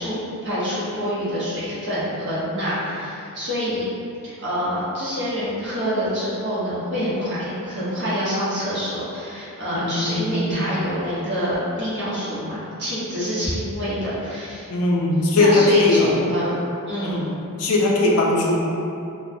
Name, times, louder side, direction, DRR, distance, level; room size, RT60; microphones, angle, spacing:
voice 1, 0.0-3.9 4.2-14.7 15.3-16.5 16.9-17.1, equal, 50° right, -10 dB, 0.9 m, -26 dB
voice 2, 9.7-10.6 14.7-16.1 17.0-17.3 17.6-18.6, left 2 dB, 75° left, -2 dB, 0.4 m, -19 dB
3.0 x 2.1 x 2.6 m, 2.7 s
head